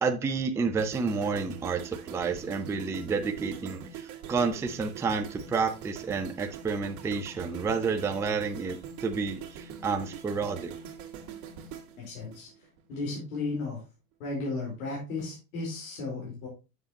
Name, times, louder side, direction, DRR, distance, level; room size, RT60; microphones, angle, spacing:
voice 1, 0.0-10.7, right 5 dB, 5° right, 5 dB, 0.4 m, -30 dB
sound 1, 0.8-13.0 13.2-13.5, right 8 dB, 45° right, 2.0 m, -43 dB
voice 2, 12.0-12.5 12.9-13.8 14.2-16.5, left 3 dB, 75° left, -3 dB, 4.1 m, -34 dB
7.3 x 6.6 x 2.9 m, 0.29 s
supercardioid pair, 120°, 43 cm